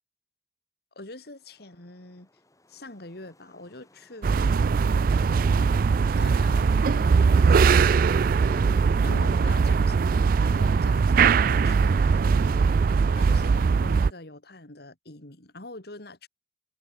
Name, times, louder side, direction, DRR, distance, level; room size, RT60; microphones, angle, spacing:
voice 1, 0.9-2.3 2.7-4.9 5.1-5.8 6.2-7.9 8.4-16.3, left 2 dB, 60° left, 3.0 m, -44 dB
Wind, 1.3-11.2, left 2 dB, 20° left, 6.7 m, -62 dB
sound 1, 4.2-14.1, right 5 dB, 50° right, 0.3 m, -21 dB
head